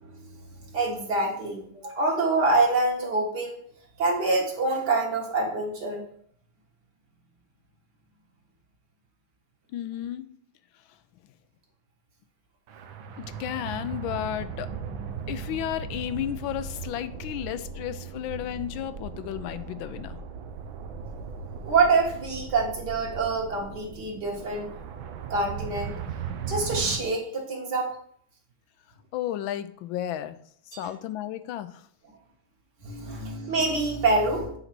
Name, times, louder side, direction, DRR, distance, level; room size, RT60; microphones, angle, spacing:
voice 1, 0.0-3.6 4.0-6.0 21.6-24.7 25.3-25.9 26.5-27.9 32.8-34.6, right 3 dB, 60° right, -1 dB, 2.3 m, -26 dB
voice 2, 9.7-10.3 13.2-14.7 15.3-20.2 29.1-30.4 30.8-31.8, left 11 dB, 85° left, 12 dB, 1.4 m, -33 dB
sound 1, 12.7-27.0, right 6 dB, 85° right, 1.6 m, -38 dB
8.0 x 4.1 x 6.0 m, 0.62 s
omnidirectional pair, 2.1 m